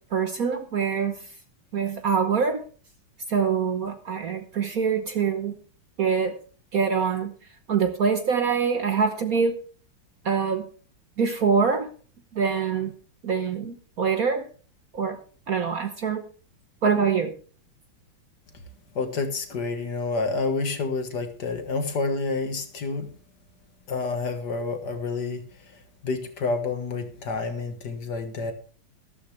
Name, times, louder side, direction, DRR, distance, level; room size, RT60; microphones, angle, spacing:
voice 1, 0.1-1.1 1.7-2.6 3.3-5.5 6.0-6.4 6.7-7.3 7.7-9.5 10.2-10.7 11.2-11.9 12.3-12.9 13.2-14.5 14.9-15.2 15.5-16.2 16.8-17.3, right 6 dB, 50° right, 7 dB, 1.3 m, -24 dB
voice 2, 19.0-23.1 23.9-25.4 26.0-28.5, left 3 dB, 55° left, 6 dB, 2.0 m, -28 dB
13.0 x 13.0 x 3.3 m, 0.40 s
omnidirectional pair, 2.3 m